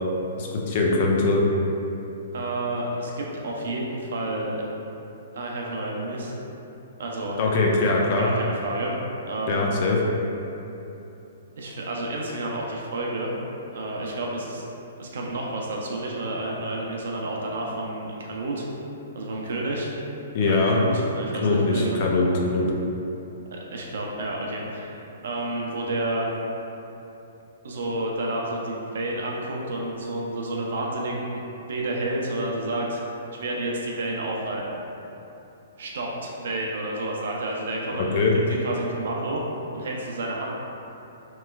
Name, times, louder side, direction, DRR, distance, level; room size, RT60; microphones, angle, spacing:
voice 1, 0.4-1.4 7.4-8.3 9.5-10.0 20.3-20.8 21.4-22.7 38.1-38.3, left 3 dB, 50° left, -1 dB, 0.5 m, -22 dB
voice 2, 2.3-4.6 5.3-6.3 7.0-7.4 8.2-8.9 9.3-9.7 11.6-13.3 13.7-14.7 15.0-18.6 19.1-19.9 20.4-22.0 22.4-22.5 23.5-26.3 27.6-31.4 31.7-33.0 33.4-34.8 35.8-39.4 39.7-40.5, right 2 dB, 70° right, -2 dB, 0.5 m, -30 dB
3.1 x 2.9 x 2.3 m, 2.9 s
hypercardioid pair, 130°, 0 cm